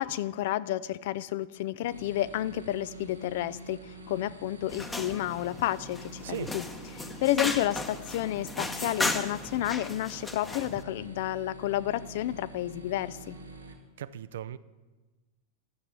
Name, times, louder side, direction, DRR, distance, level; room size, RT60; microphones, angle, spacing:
voice 1, 0.0-6.7 6.9-13.4, left 13 dB, 50° left, 0.4 m, -31 dB
sound 1, 1.8-13.7, right 3 dB, 85° right, 2.0 m, -47 dB
sound 2, 4.7-10.8, left 2 dB, 10° left, 0.9 m, -36 dB
voice 2, 6.2-6.5 14.0-14.6, right 11 dB, 60° right, 0.4 m, -37 dB
11.5 x 7.3 x 8.1 m
figure-of-eight pair, 90°, 0 cm